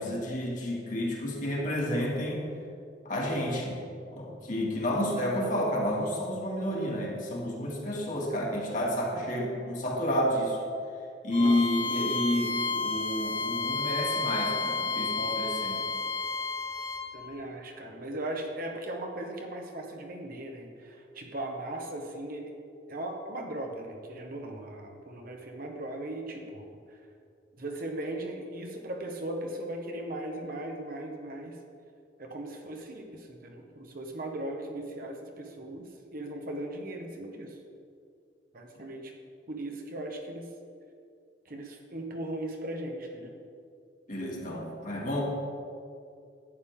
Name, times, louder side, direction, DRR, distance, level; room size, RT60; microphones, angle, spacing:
voice 1, 0.0-2.4 3.0-3.8 4.1-10.6 11.2-15.8 44.1-45.2, left 1 dB, 45° left, -3 dB, 2.1 m, -30 dB
Bowed string instrument, 11.3-17.1, left 3 dB, 30° left, 1.3 m, -31 dB
voice 2, 17.1-22.5 22.9-26.7 27.6-31.6 32.2-37.6 38.5-39.1 39.5-40.5 41.4-43.4, right 1 dB, 55° right, 2 dB, 1.1 m, -38 dB
11.5 x 9.1 x 3.6 m, 2.5 s
head